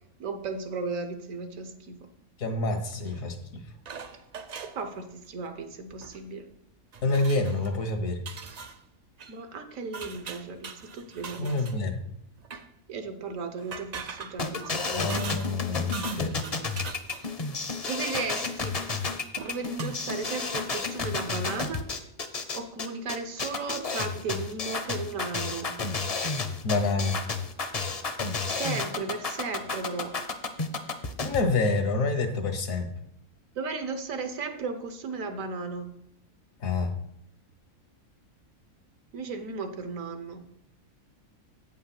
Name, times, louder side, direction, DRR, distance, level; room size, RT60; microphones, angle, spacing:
voice 1, 0.2-2.1 4.7-6.5 9.3-11.5 12.9-15.3 17.9-18.8 19.4-21.9 22.5-25.8 28.4-30.2 33.5-36.0 39.1-40.5, right 4 dB, 70° right, 8 dB, 1.3 m, -35 dB
voice 2, 2.4-3.6 7.0-8.2 11.4-12.0 14.9-16.4 26.6-27.2 31.2-32.9 36.6-36.9, left 3 dB, 75° left, 6 dB, 1.6 m, -27 dB
sound 1, 3.1-3.3 3.8-4.8 5.9-6.2 6.5-6.6 6.9-7.7 8.2-8.8 9.2-9.4 9.9-11.8 12.4-12.7 13.6-15.6 15.9-17.4 19.0-19.1 19.4-20.2 20.7-20.8, right 6 dB, 55° right, 0.4 m, -41 dB
sound 2, 14.4-31.4, left 4 dB, 35° left, 0.7 m, -31 dB
8.4 x 5.6 x 5.9 m, 0.76 s
omnidirectional pair, 1.5 m